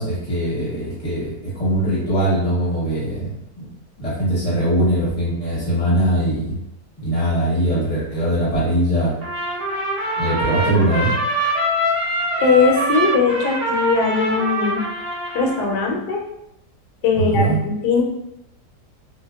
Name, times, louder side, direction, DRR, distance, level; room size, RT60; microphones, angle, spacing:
voice 1, 0.0-3.3 3.6-3.7 4.0-6.6 7.0-9.1 10.2-11.1 17.1-17.6, right 1 dB, 30° left, -9 dB, 0.7 m, -21 dB
Trumpet, 9.2-15.8, right 1 dB, 80° right, 1.2 m, -24 dB
voice 2, 12.4-14.8 15.3-16.2 17.0-18.0, left 4 dB, 75° left, 0 dB, 1.0 m, -19 dB
2.7 x 2.1 x 2.2 m, 0.82 s
omnidirectional pair, 1.8 m